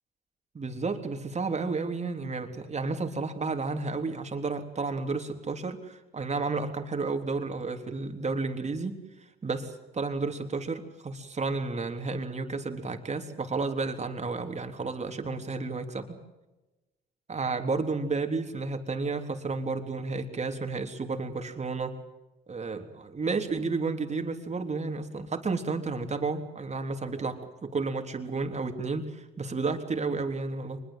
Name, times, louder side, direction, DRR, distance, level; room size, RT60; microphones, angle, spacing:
voice 1, 0.5-9.0 9.4-16.1 17.3-22.0 22.5-30.8, right 4 dB, 35° right, 5 dB, 3.6 m, -32 dB
24.0 x 21.0 x 7.8 m, 1.1 s
supercardioid pair, 75°, 21 cm